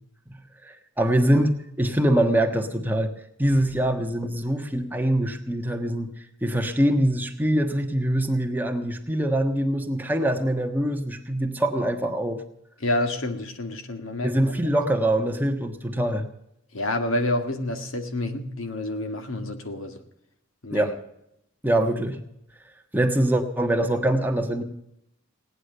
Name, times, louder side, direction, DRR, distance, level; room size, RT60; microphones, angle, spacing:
voice 1, 0.6-3.1 3.4-6.1 6.4-12.4 14.2-16.3 20.7-20.9 21.6-22.2 22.9-24.6, right 1 dB, 10° right, 1.4 m, -23 dB
voice 2, 12.8-14.4 16.7-20.0 20.6-20.9, left 1 dB, 85° left, 1.8 m, -28 dB
17.5 x 9.9 x 6.7 m
head